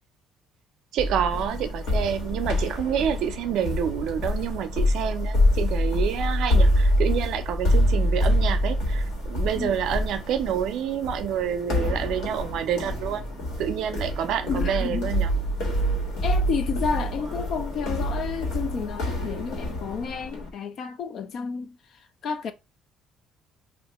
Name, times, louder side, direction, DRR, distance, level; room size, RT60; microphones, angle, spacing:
voice 1, 0.9-13.3 13.6-15.3, right 9 dB, 70° right, 0.5 m, -28 dB
sound 1, 1.0-20.5, left 1 dB, 75° left, 1.3 m, -26 dB
voice 2, 14.5-15.1 16.2-21.8 22.2-22.5, left 6 dB, 50° left, 0.4 m, -31 dB
2.8 x 2.4 x 3.4 m
cardioid pair, 145°, 0 cm